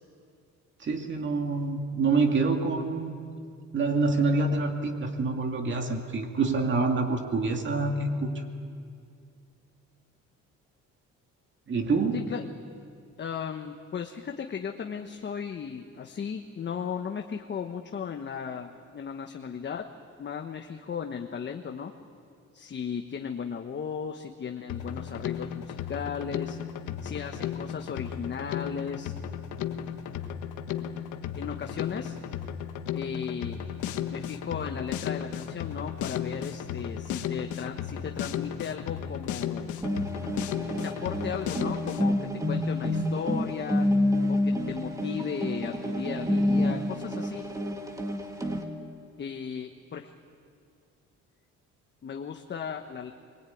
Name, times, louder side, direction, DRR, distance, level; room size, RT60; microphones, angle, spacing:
voice 1, 0.8-3.1 3.7-8.4 11.7-12.3 40.2-40.3, right 3 dB, 40° right, 3 dB, 2.5 m, -26 dB
voice 2, 13.2-19.8 20.2-21.9 22.5-26.6 27.0-29.1 31.4-32.2 32.9-33.6 34.1-39.7 40.7-43.9 44.3-47.4 49.2-50.1 52.0-53.1, left 7 dB, 40° left, 3 dB, 1.3 m, -36 dB
Drum kit, 24.7-42.1, left 9 dB, 85° left, 1.4 m, -35 dB
sound 1, 39.8-48.6, left 1 dB, 10° right, 2.2 m, -28 dB
23.0 x 20.5 x 9.4 m, 2.4 s
cardioid pair, 115°, 29 cm